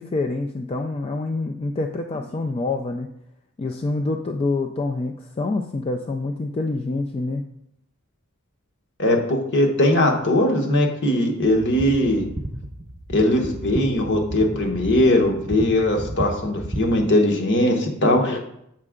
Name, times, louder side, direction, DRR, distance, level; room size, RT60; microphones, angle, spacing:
voice 1, 0.0-3.1 3.6-7.4 18.3-18.4, left 2 dB, 25° left, 3 dB, 0.3 m, -26 dB
voice 2, 9.0-12.3 13.1-18.4, left 1 dB, 55° left, 3 dB, 1.1 m, -20 dB
sound 1, 11.4-17.1, right 1 dB, 20° right, 0.9 m, -33 dB
7.4 x 5.3 x 3.7 m, 0.75 s
head